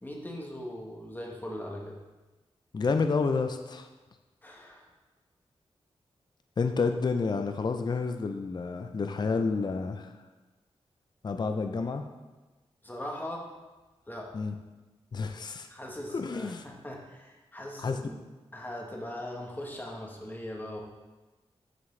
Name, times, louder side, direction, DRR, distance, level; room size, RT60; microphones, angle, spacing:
voice 1, 0.0-2.0 4.4-4.9 12.8-13.5 14.1-14.4 15.7-18.2 18.5-20.8, left 1 dB, 15° left, -1 dB, 1.1 m, -40 dB
voice 2, 2.7-3.9 6.6-10.1 11.2-12.0 14.3-14.5 15.1-15.7 16.1-16.6 17.8-18.0, left 4 dB, 40° left, 7 dB, 0.4 m, -29 dB
9.1 x 3.4 x 3.2 m, 1.2 s
cardioid pair, 60°, 11 cm